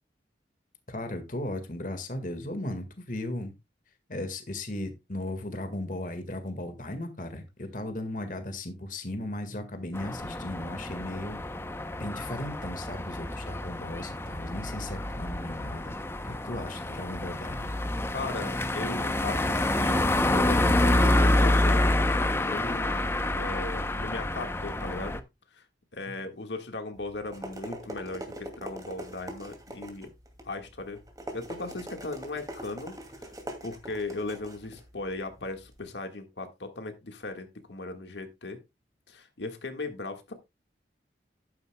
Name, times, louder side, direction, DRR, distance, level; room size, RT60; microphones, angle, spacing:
voice 1, 0.9-3.5 4.1-11.4 11.9-16.0 16.2-17.7, left 1 dB, 50° left, 8 dB, 1.7 m, -36 dB
sound 1, 9.9-25.2, left 1 dB, 15° left, 0.7 m, -27 dB
voice 2, 18.1-23.1 23.3-25.2 25.5-25.6 25.9-30.1 30.4-31.0 31.3-33.3 33.6-38.6 39.1-40.3, left 2 dB, 85° left, 6 dB, 1.7 m, -38 dB
sound 2, 27.0-35.8, right 1 dB, 20° right, 2.3 m, -43 dB
12.0 x 9.6 x 2.2 m, 0.23 s
head